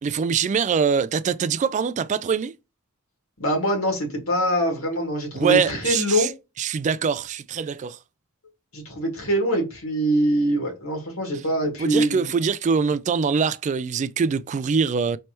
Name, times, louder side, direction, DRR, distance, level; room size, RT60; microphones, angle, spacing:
voice 1, 0.0-2.5 5.3-6.3 6.6-8.0 11.8-15.2, right 6 dB, 35° right, 0.3 m, -23 dB
voice 2, 3.4-6.3 8.7-12.3, equal, 80° left, 2.4 m, -24 dB
4.4 x 3.2 x 3.0 m
head